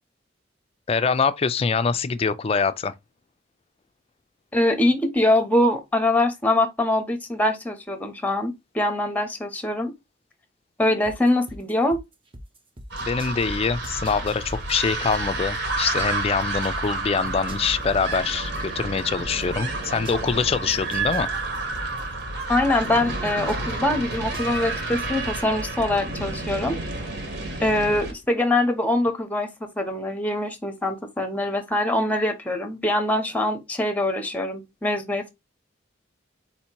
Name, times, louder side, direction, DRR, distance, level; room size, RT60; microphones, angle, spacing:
voice 1, 0.9-2.9 13.0-21.3, left 5 dB, 30° left, 0.4 m, -24 dB
voice 2, 4.5-9.9 10.8-12.0 22.5-26.8 27.6-29.5 29.8-35.3, left 1 dB, 10° left, 0.8 m, -23 dB
sound 1, 11.0-13.5 13.8-16.9 17.3-20.4 20.7-23.8 24.1-24.6, equal, 25° right, 0.7 m, -42 dB
sound 2, 12.9-28.1, right 2 dB, 60° right, 1.2 m, -30 dB
4.3 x 2.8 x 4.4 m
head